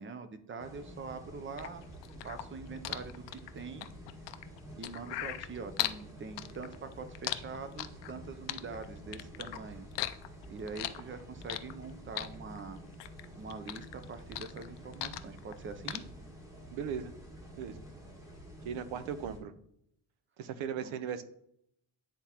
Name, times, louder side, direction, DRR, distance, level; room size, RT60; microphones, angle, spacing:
voice 1, 0.0-1.8 2.2-3.9 4.7-9.9 10.5-12.8 13.3-16.0 18.9-19.0 20.8-20.9, right 4 dB, 25° right, 10 dB, 0.4 m, -44 dB
sound 1, 0.6-19.4, equal, 5° right, 1.2 m, -49 dB
sound 2, 1.6-6.0 6.4-8.2 8.5-9.6 9.9-11.8 12.2-13.2 13.5-15.6 15.9-16.0, left 14 dB, 65° left, 0.5 m, -37 dB
voice 2, 16.7-17.1 17.6-17.8 18.6-19.5 20.4-21.2, right 8 dB, 85° right, 13 dB, 0.7 m, -37 dB
10.0 x 3.5 x 2.9 m, 0.72 s
cardioid pair, 135°, 47 cm